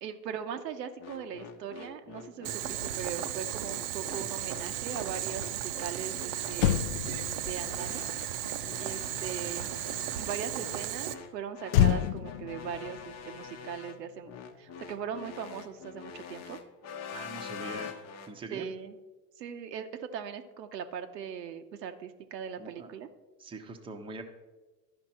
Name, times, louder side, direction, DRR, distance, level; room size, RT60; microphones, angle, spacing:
voice 1, 0.0-6.8 7.4-8.4 8.8-9.7 10.2-14.3 14.6-16.6 18.5-19.0 19.4-23.1, right 7 dB, 80° right, 7 dB, 0.9 m, -40 dB
sound 1, 1.0-18.3, left 6 dB, 30° left, 0.9 m, -45 dB
Boiling, 2.4-11.1, right 12 dB, 55° right, 0.7 m, -35 dB
Motor vehicle (road), 6.1-6.2 6.5-10.1 11.7-14.3 14.6-14.8, left 11 dB, 60° left, 0.6 m, -31 dB
voice 2, 17.1-18.0 18.3-18.7 22.6-22.9 23.4-24.2, right 3 dB, 10° right, 4 dB, 0.8 m, -42 dB
12.0 x 5.2 x 4.3 m, 1.2 s
hypercardioid pair, 100°, 49 cm